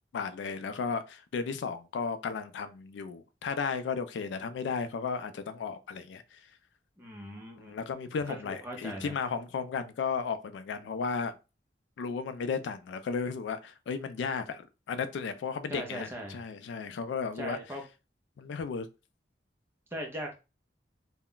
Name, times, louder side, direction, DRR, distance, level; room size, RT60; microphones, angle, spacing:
voice 1, 0.1-6.4 7.6-11.3 12.0-17.6 18.4-18.9, left 5 dB, 80° left, 0.3 m, -34 dB
voice 2, 7.0-9.1 15.7-16.4 17.4-17.8 19.9-20.4, equal, 15° right, 0.6 m, -40 dB
2.3 x 2.1 x 3.7 m
head